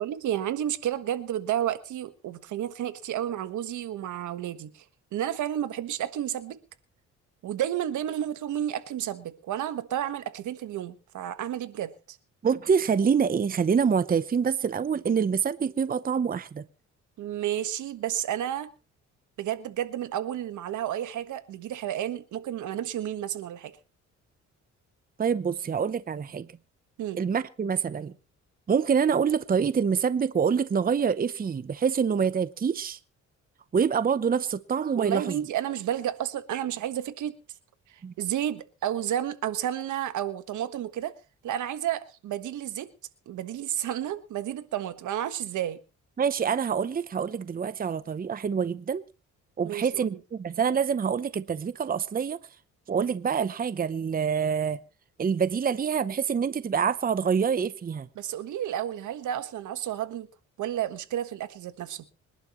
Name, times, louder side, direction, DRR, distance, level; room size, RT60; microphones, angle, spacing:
voice 1, 0.0-4.8 5.1-6.6 7.4-12.2 17.2-18.7 19.4-23.7 27.0-27.2 35.0-37.3 38.2-41.1 41.4-42.9 43.3-45.8 49.6-50.2 58.2-60.3 60.6-62.0, right 11 dB, 75° right, 1.5 m, -31 dB
voice 2, 12.4-16.6 25.2-26.5 27.2-28.1 28.7-33.0 33.7-35.4 38.0-38.1 46.2-49.0 49.6-52.4 52.9-54.8 55.2-58.1, right 6 dB, 30° right, 0.8 m, -26 dB
26.0 x 11.0 x 3.1 m
cardioid pair, 90°, 30 cm